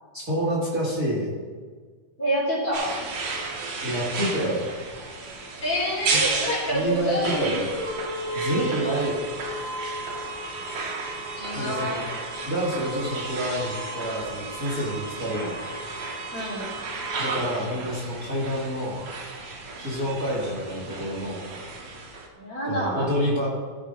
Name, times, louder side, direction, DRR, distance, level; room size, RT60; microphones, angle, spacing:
voice 1, 0.1-1.3 3.8-4.7 6.1-6.2 6.7-7.7 8.3-9.2 11.5-12.0 12.4-15.6 17.2-19.1 19.8-21.4 22.6-23.5, equal, 35° right, -6 dB, 2.2 m, -28 dB
voice 2, 2.2-3.0 5.6-7.6 11.3-12.1 16.3-16.7 22.3-23.1, equal, 45° left, -6 dB, 4.1 m, -27 dB
sound 1, 2.7-22.3, right 3 dB, 70° right, 2.9 m, -32 dB
16.5 x 9.7 x 2.5 m, 1.5 s
omnidirectional pair, 3.4 m